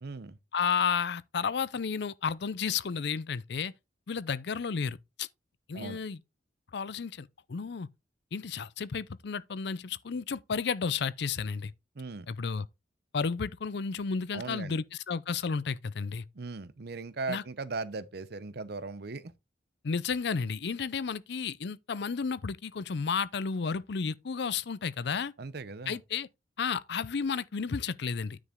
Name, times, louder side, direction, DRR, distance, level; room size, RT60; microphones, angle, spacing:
voice 1, 0.0-0.4 5.7-6.0 11.9-12.3 14.3-14.8 16.3-19.3 25.4-26.0, right 3 dB, 60° right, 0.7 m, -38 dB
voice 2, 0.5-3.7 4.1-5.3 5.7-6.2 6.7-7.9 8.3-11.7 12.3-12.7 13.1-16.3 17.3-17.4 19.8-25.3 25.9-26.3 26.6-28.4, left 5 dB, 65° left, 0.5 m, -32 dB
9.7 x 5.2 x 3.6 m
head